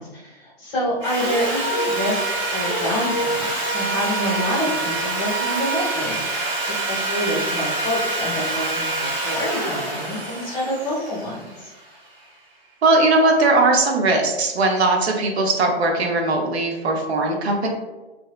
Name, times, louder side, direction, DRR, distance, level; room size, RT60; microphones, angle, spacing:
voice 1, 0.0-11.7, left 1 dB, 20° left, -7 dB, 0.9 m, -27 dB
Sawing, 1.0-12.1, right 2 dB, 60° right, 1.5 m, -25 dB
voice 2, 12.8-17.7, right 2 dB, 80° right, 2 dB, 0.6 m, -19 dB
2.7 x 2.1 x 2.3 m, 1.1 s
hypercardioid pair, 165°, 32 cm